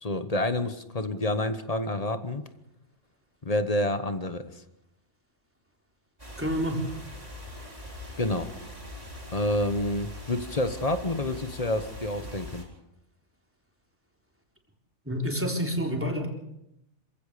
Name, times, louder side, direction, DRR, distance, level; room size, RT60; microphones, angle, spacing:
voice 1, 0.0-2.4 3.4-4.6 8.2-8.5 9.3-12.7, left 1 dB, 35° left, 11 dB, 1.2 m, -28 dB
sound 1, 6.2-12.6, left 1 dB, 35° right, 5.1 m, -42 dB
voice 2, 6.4-6.9 15.1-16.3, equal, 10° right, 1 dB, 3.8 m, -28 dB
27.0 x 16.0 x 6.7 m, 0.84 s
omnidirectional pair, 1.2 m